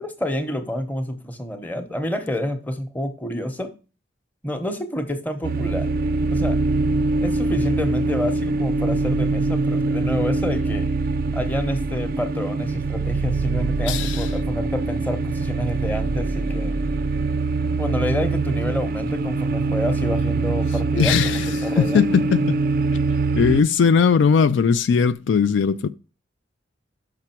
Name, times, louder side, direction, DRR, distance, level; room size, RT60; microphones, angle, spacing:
voice 1, 0.0-3.7 4.4-5.9 6.3-6.6 7.2-10.9 11.3-16.8 17.8-22.1, left 1 dB, 10° left, 0.9 m, -28 dB
sound 1, 5.4-23.6, right 3 dB, 50° right, 0.4 m, -23 dB
voice 2, 13.9-14.3 21.0-22.6 23.4-25.9, left 6 dB, 70° left, 0.3 m, -19 dB
5.9 x 5.9 x 4.4 m
head